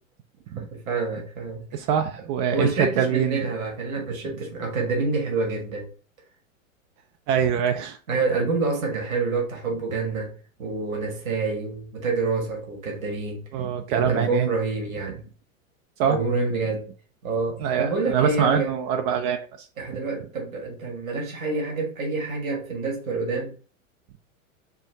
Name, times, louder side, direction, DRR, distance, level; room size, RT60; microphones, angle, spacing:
voice 1, 0.6-1.6 2.5-5.9 8.1-10.3 10.6-13.4 13.9-15.2 16.1-16.9 17.2-18.7 19.8-23.5, right 3 dB, 75° right, 1.8 m, -27 dB
voice 2, 1.7-3.5 7.3-8.0 13.5-14.5 16.0-16.2 17.6-19.7, right 8 dB, 30° right, 0.4 m, -24 dB
4.5 x 2.5 x 4.4 m
hypercardioid pair, 100°, 41 cm